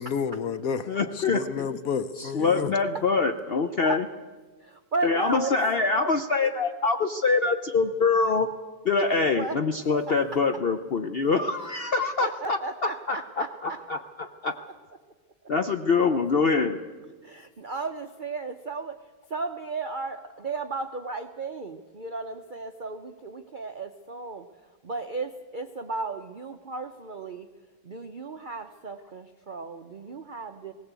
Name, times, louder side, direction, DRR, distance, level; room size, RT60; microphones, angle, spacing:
voice 1, 0.0-0.9 1.3-2.7, left 6 dB, 60° left, 12 dB, 1.1 m, -30 dB
voice 2, 0.9-1.7 2.2-4.1 5.0-8.5 8.8-14.6 15.5-16.8, left 4 dB, 85° left, 7 dB, 0.5 m, -25 dB
voice 3, 4.9-5.6 9.2-9.6 12.2-13.8 17.2-19.0 19.3-24.4 24.8-27.5 27.9-30.7, right 3 dB, 90° right, 7 dB, 0.4 m, -34 dB
18.5 x 17.5 x 8.2 m, 1.4 s
omnidirectional pair, 2.0 m